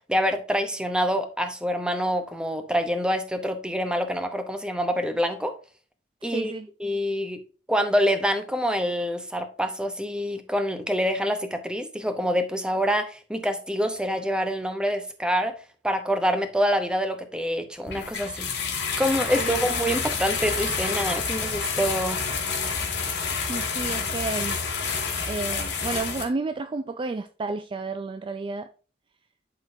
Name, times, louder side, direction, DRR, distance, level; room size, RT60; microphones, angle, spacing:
voice 1, 0.1-5.5 6.2-6.5 6.8-7.4 7.7-15.5 15.8-22.2, equal, 5° right, 0.7 m, -26 dB
voice 2, 6.2-6.7 19.2-19.6 23.5-24.6 25.3-28.7, right 3 dB, 30° right, 0.3 m, -31 dB
sound 1, 17.9-26.2, left 5 dB, 75° left, 1.9 m, -28 dB
11.0 x 3.8 x 2.6 m
head